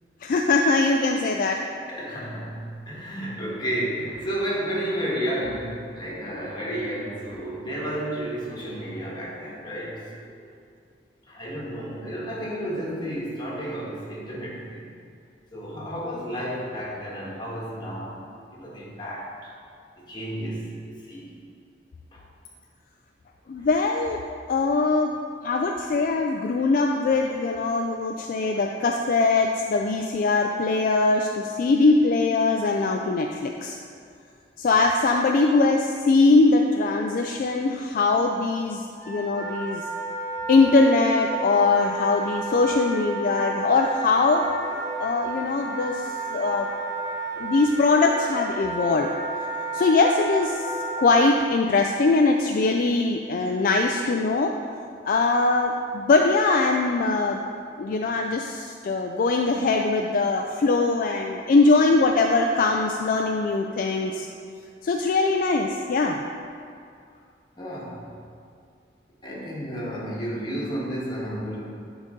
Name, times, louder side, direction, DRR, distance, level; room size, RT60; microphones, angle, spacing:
voice 1, 0.2-1.6 23.5-24.2 24.5-25.1 25.4-33.8 34.6-39.8 40.5-44.5 45.0-46.7 47.4-49.1 49.7-50.7 51.0-54.5 55.0-57.4 57.8-64.3 64.8-66.2, left 3 dB, 55° left, 2 dB, 0.3 m, -22 dB
voice 2, 1.8-10.5 11.3-15.0 15.5-18.2 18.5-19.5 20.1-21.3 22.1-22.2 23.6-23.7 28.5-28.6 67.6-68.1 69.2-71.7, equal, 25° left, -5 dB, 1.6 m, -32 dB
Wind instrument woodwind instrument, 39.0-51.2, right 2 dB, 25° right, 1.5 m, -32 dB
10.5 x 4.0 x 3.8 m, 2.3 s
head